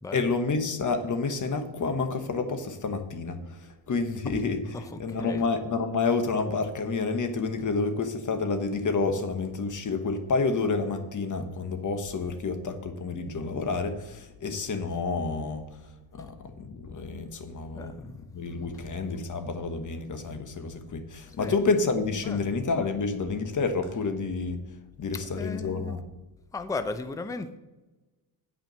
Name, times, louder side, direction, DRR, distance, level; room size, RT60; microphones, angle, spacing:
voice 1, 0.1-3.4 3.9-15.6 16.1-18.0 18.3-24.6 25.0-26.0, left 4 dB, 40° left, 7 dB, 1.2 m, -29 dB
voice 2, 17.7-18.1 21.4-21.6 22.2-22.4 25.4-26.0 26.5-27.6, left 3 dB, 5° left, 9 dB, 0.5 m, -35 dB
9.2 x 5.0 x 6.8 m, 1.1 s
cardioid pair, 100°, 49 cm